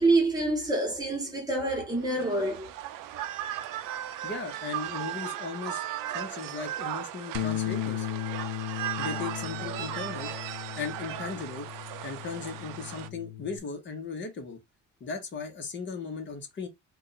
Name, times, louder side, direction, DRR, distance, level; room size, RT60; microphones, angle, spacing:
voice 1, 0.0-2.7, right 2 dB, 10° right, 1.2 m, -26 dB
sound 1, 2.0-13.1, right 12 dB, 80° right, 0.5 m, -37 dB
voice 2, 4.2-5.8 6.1-8.1 9.0-10.3 10.8-11.7 12.0-14.6 15.0-16.7, left 5 dB, 35° left, 1.0 m, -37 dB
Bass guitar, 7.3-13.6, left 12 dB, 85° left, 0.6 m, -36 dB
2.6 x 2.4 x 4.0 m
cardioid pair, 140°, 32 cm